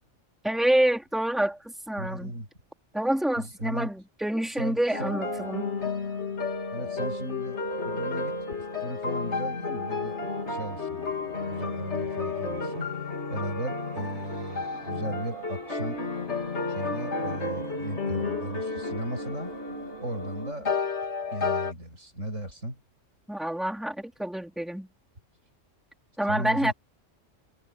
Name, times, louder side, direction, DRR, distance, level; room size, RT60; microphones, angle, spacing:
voice 1, 0.4-1.6 1.9-2.3 2.9-5.7 23.3-24.9 26.2-26.7, right 1 dB, ahead, 3.2 m, -27 dB
voice 2, 2.0-2.5 3.4-3.9 4.6-5.2 6.7-8.4 8.8-10.2 10.5-12.9 13.3-16.0 16.7-19.5 20.0-20.7 21.3-22.8 26.3-26.7, right 1 dB, 85° right, 8.6 m, -36 dB
sound 1, 4.9-21.7, left 4 dB, 65° left, 3.6 m, -32 dB
sound 2, 7.5-20.5, right 1 dB, 50° right, 4.6 m, -43 dB
omnidirectional pair, 1.3 m